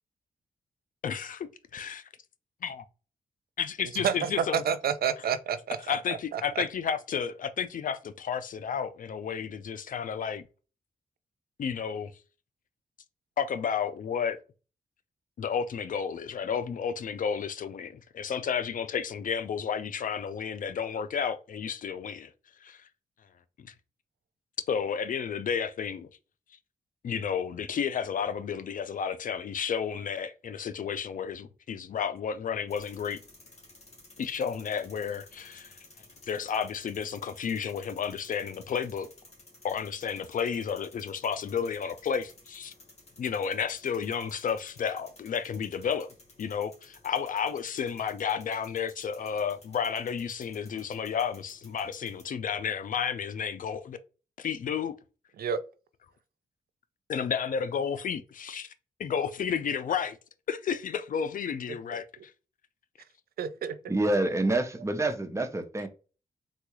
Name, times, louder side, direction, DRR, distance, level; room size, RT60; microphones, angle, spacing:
voice 1, 1.0-2.0 2.6-2.8 3.6-4.6 5.9-10.4 11.6-12.1 13.4-14.4 15.4-22.3 22.6-22.8 23.6-23.7 24.7-26.1 27.0-33.2 34.2-35.8 36.3-39.1 39.6-42.7 43.2-54.0 54.4-55.0 57.1-58.7 59.0-60.2 60.5-62.3, left 7 dB, 60° left, 0.4 m, -32 dB
voice 2, 3.9-6.6 55.4-55.6 61.9-62.0 63.4-63.7, right 8 dB, 80° right, 0.4 m, -30 dB
sound 1, 32.7-52.2, left 2 dB, 45° left, 1.5 m, -55 dB
voice 3, 63.9-65.9, right 2 dB, 20° right, 0.7 m, -27 dB
3.7 x 2.3 x 3.0 m
cardioid pair, 75°, 16 cm